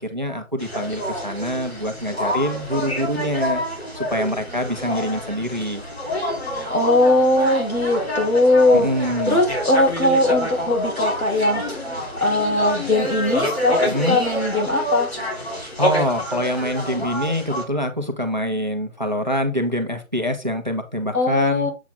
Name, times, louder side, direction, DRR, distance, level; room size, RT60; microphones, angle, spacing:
voice 1, 0.0-3.6 3.9-5.8 8.7-9.4 13.8-14.2 15.8-21.7, equal, 35° right, 6 dB, 1.0 m, -25 dB
sound 1, 0.6-17.6, equal, 50° left, 2.5 m, -27 dB
voice 2, 6.7-11.6 12.2-15.1 21.1-21.7, left 1 dB, 85° left, 1 dB, 3.5 m, -19 dB
7.3 x 4.6 x 3.8 m, 0.26 s
figure-of-eight pair, 175°, 41 cm